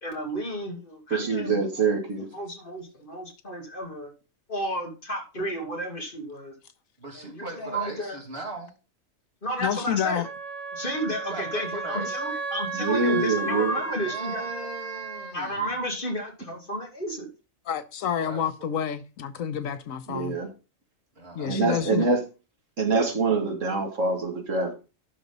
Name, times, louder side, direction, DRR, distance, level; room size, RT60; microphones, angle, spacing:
voice 1, 0.0-1.6 2.3-4.1 4.5-6.5 7.1-8.2 9.4-10.2 10.7-14.5 15.3-17.3, equal, 40° left, 2.7 m, -32 dB
voice 2, 1.1-2.3 12.7-13.7 20.1-20.5 21.5-22.2 22.8-24.7, right 4 dB, 65° right, 2.2 m, -25 dB
voice 3, 7.0-8.7 11.2-12.3 14.0-15.8 18.2-18.7 21.2-22.1, right 2 dB, 45° right, 2.7 m, -39 dB
voice 4, 9.6-10.3 17.7-20.3 21.3-22.1, left 9 dB, 80° left, 1.2 m, -29 dB
Wind instrument woodwind instrument, 10.2-15.3, right 4 dB, 25° right, 1.6 m, -33 dB
11.5 x 4.1 x 5.3 m
omnidirectional pair, 1.4 m